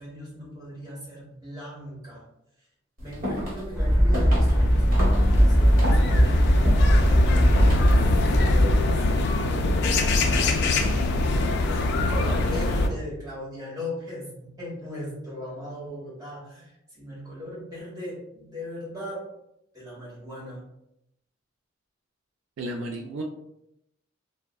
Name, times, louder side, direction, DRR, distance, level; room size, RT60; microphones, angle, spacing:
voice 1, 0.0-2.2 3.0-7.4 7.9-19.2 19.7-20.6, left 1 dB, 20° right, -6 dB, 1.2 m, -38 dB
sound 1, 3.0-8.2, equal, 45° right, 1.0 m, -33 dB
sound 2, 3.7-8.8, equal, ahead, 0.6 m, -19 dB
sound 3, 4.1-12.9, left 2 dB, 55° left, 0.3 m, -24 dB
voice 2, 22.6-23.2, right 1 dB, 70° right, 2 dB, 0.3 m, -33 dB
3.5 x 2.1 x 2.3 m, 0.81 s
head